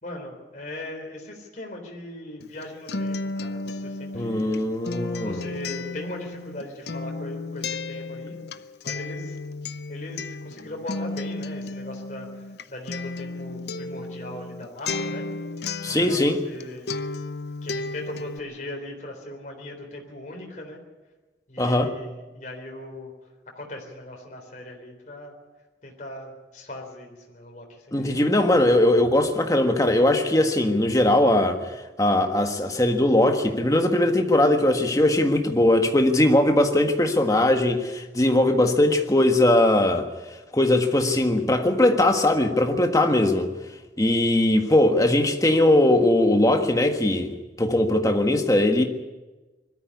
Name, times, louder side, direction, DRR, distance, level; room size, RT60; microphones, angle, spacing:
voice 1, 0.0-4.6 5.2-8.4 8.8-9.4 9.9-15.2 15.8-16.9 17.6-20.8 21.5-23.1 23.6-25.3 25.8-28.2, left 1 dB, 45° left, 1 dB, 3.8 m, -39 dB
Acoustic guitar, 2.4-16.6 16.9-18.4, left 3 dB, 70° left, 0.7 m, -33 dB
voice 2, 4.1-5.4 15.8-16.4 21.6-21.9 27.9-31.6 32.0-40.1 40.5-43.5 44.0-47.3 47.6-48.8, left 1 dB, 20° left, 5 dB, 1.6 m, -20 dB
21.0 x 13.5 x 9.7 m, 1.2 s
head